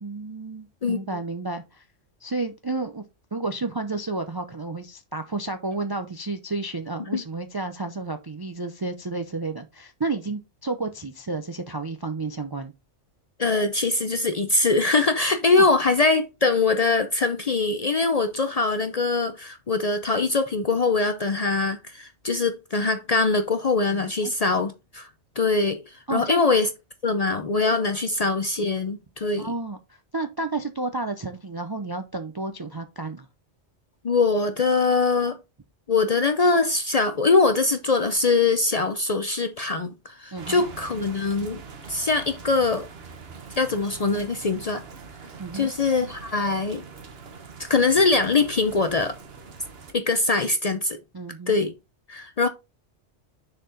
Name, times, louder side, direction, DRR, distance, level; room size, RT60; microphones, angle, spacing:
voice 1, 0.0-1.8 2.2-3.0 3.3-12.7 15.6-15.7 23.9-24.3 26.1-26.4 29.4-33.3 40.3-40.6 45.4-45.7 51.1-51.5, right 3 dB, 35° right, 0.4 m, -31 dB
voice 2, 13.4-25.1 25.4-26.7 27.0-29.5 34.0-35.4 35.9-41.6 41.9-42.9 43.6-44.8 45.5-46.8 47.6-49.1 49.9-51.0 51.5-51.7 52.1-52.5, left 3 dB, 45° left, 0.5 m, -22 dB
sound 1, 40.4-49.9, right 5 dB, 60° right, 1.2 m, -43 dB
6.5 x 4.4 x 3.8 m
omnidirectional pair, 1.2 m